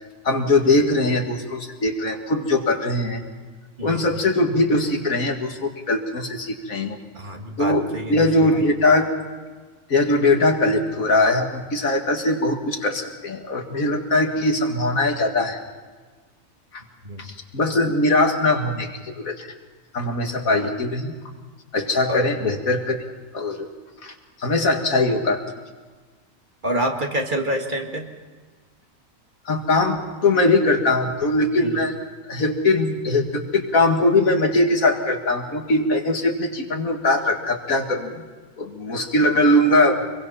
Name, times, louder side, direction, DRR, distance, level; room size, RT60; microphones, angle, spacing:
voice 1, 0.2-3.2 3.8-7.0 7.6-9.1 9.9-15.6 16.7-16.8 17.2-19.5 19.9-21.1 21.7-23.0 23.3-23.7 24.0-24.1 24.4-25.4 29.5-31.9 32.3-38.2 38.6-40.0, left 2 dB, 85° left, 3 dB, 2.5 m, -21 dB
voice 2, 7.1-8.5 17.1-17.2 22.1-22.3 26.6-28.0 31.6-31.8, right 1 dB, 35° right, 2 dB, 2.1 m, -27 dB
26.0 x 22.5 x 5.7 m, 1.4 s
omnidirectional pair, 1.4 m